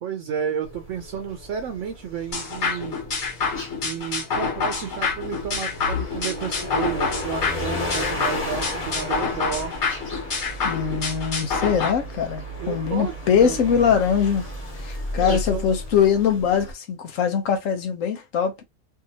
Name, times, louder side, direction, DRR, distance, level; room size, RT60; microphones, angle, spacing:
voice 1, 0.0-3.0 3.8-9.7 12.6-13.1 13.4-14.0 15.1-15.7, right 7 dB, 70° right, 0.9 m, -31 dB
sound 1, 0.6-16.7, left 1 dB, 30° left, 1.0 m, -34 dB
sound 2, 2.3-11.9, left 5 dB, 60° left, 1.3 m, -27 dB
voice 2, 10.6-14.4 14.8-18.6, left 7 dB, 85° left, 1.2 m, -22 dB
2.7 x 2.6 x 2.8 m
omnidirectional pair, 1.3 m